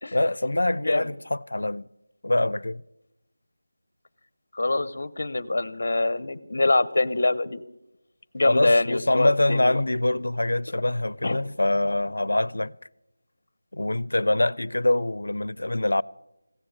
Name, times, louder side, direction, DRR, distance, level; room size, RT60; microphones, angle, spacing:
voice 1, 0.1-1.9 2.2-2.8 8.4-12.8 13.7-16.0, left 1 dB, 85° left, 0.4 m, -24 dB
voice 2, 4.5-7.6 8.3-9.8 10.7-10.8 11.2-11.4, left 2 dB, 40° left, 0.6 m, -24 dB
16.0 x 6.9 x 9.0 m
figure-of-eight pair, 180°, 0 cm